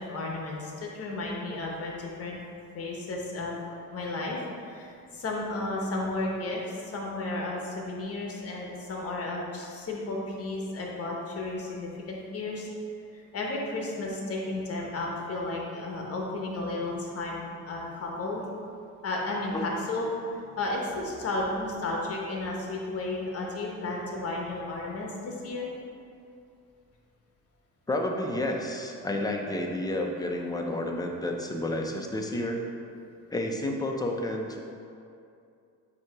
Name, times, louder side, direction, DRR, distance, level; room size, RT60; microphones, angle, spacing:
voice 1, 0.0-2.4 2.7-12.7 13.1-18.4 19.0-25.7, left 2 dB, 45° left, -2 dB, 1.2 m, -33 dB
voice 2, 27.9-32.6 33.3-34.6, left 1 dB, 10° left, 1 dB, 0.6 m, -30 dB
7.3 x 2.9 x 4.6 m, 2.5 s
cardioid pair, 120°, 32 cm